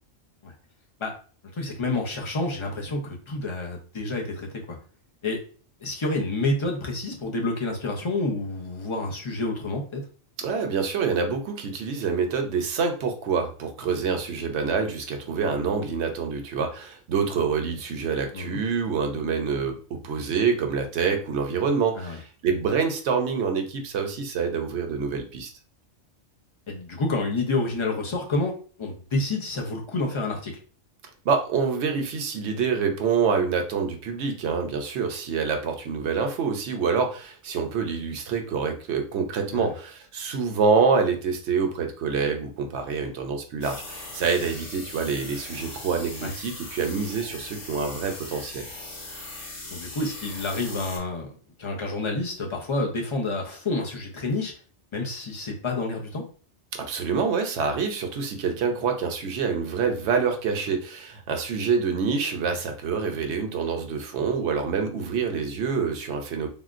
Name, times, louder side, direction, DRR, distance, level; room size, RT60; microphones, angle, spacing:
voice 1, 1.5-4.8 5.2-5.4 5.8-10.1 18.3-18.6 21.9-22.2 26.7-30.6 39.5-39.7 46.2-46.3 49.7-54.5 54.9-56.2, left 2 dB, 35° left, 0 dB, 0.6 m, -29 dB
voice 2, 10.4-25.5 31.2-48.6 56.7-66.5, right 5 dB, 75° right, 4 dB, 0.9 m, -26 dB
sound 1, 43.6-51.0, left 2 dB, 85° left, 1.3 m, -39 dB
3.6 x 2.2 x 2.4 m, 0.40 s
omnidirectional pair, 1.2 m